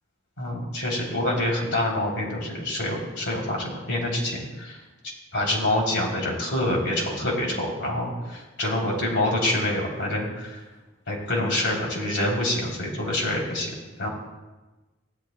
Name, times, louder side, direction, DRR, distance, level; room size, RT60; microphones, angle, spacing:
voice 1, 0.4-4.8 5.3-10.6 11.1-13.7 14.0-14.1, left 1 dB, 75° left, -1 dB, 3.2 m, -26 dB
16.5 x 12.0 x 2.2 m, 1.2 s
head